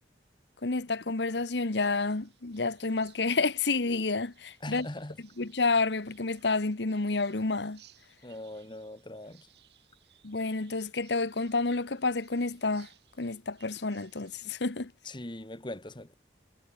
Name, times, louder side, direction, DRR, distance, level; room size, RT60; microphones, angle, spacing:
voice 1, 0.6-4.9 5.2-7.8 10.2-12.9 13.2-14.9, left 3 dB, 75° left, 1.2 m, -29 dB
sound 1, 1.5-14.5, right 12 dB, 70° right, 7.7 m, -63 dB
voice 2, 4.6-5.2 8.2-9.5 15.1-16.2, left 1 dB, 25° left, 1.9 m, -41 dB
head